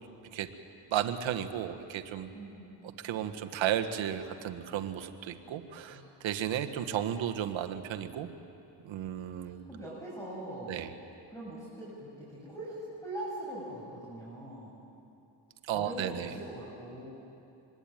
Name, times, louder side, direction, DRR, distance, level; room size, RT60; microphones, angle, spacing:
voice 1, 0.9-2.3 3.0-8.3 8.8-9.6 10.7-10.9 15.6-16.3, right 10 dB, 75° right, 6 dB, 1.6 m, -34 dB
voice 2, 2.3-2.7 5.9-6.0 9.4-10.8 11.3-14.7 15.7-17.1, right 1 dB, 5° left, -6 dB, 7.5 m, -42 dB
25.0 x 21.0 x 9.2 m, 2.8 s
cardioid pair, 90°, 46 cm